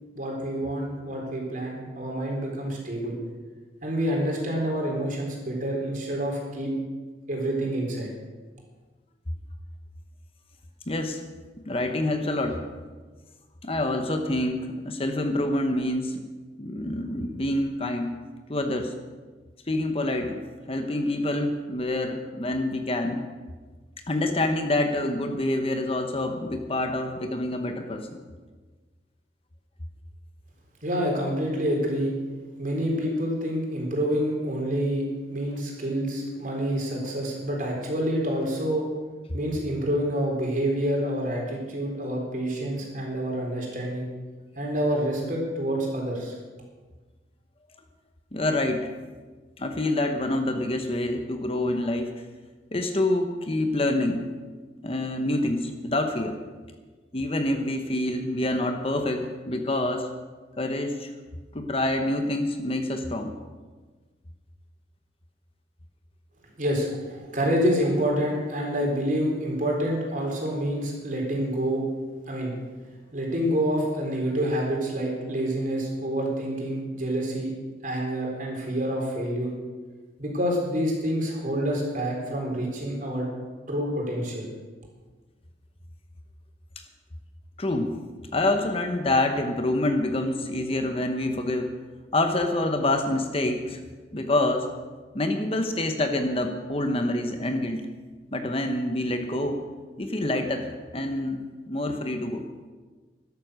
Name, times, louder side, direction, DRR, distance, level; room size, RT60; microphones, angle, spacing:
voice 1, 0.2-3.2 3.8-6.7 7.3-8.1 30.8-32.2 32.6-38.8 39.3-44.1 44.6-46.3 66.6-71.8 72.3-72.5 73.1-77.5 77.8-79.5 80.2-83.3 83.7-84.5, equal, 45° right, -1 dB, 4.0 m, -27 dB
voice 2, 10.9-11.2 11.7-12.6 13.6-16.2 16.6-18.1 18.5-18.9 19.7-20.4 20.7-23.2 24.1-28.2 48.3-48.9 49.6-52.2 52.7-54.3 54.8-56.4 57.1-60.1 60.6-61.1 61.5-63.3 87.6-87.9 88.3-91.7 92.1-93.8 94.1-94.7 95.1-97.8 98.3-99.6 100.0-102.4, left 1 dB, 30° left, 6 dB, 1.0 m, -27 dB
13.0 x 12.0 x 6.4 m, 1.4 s
head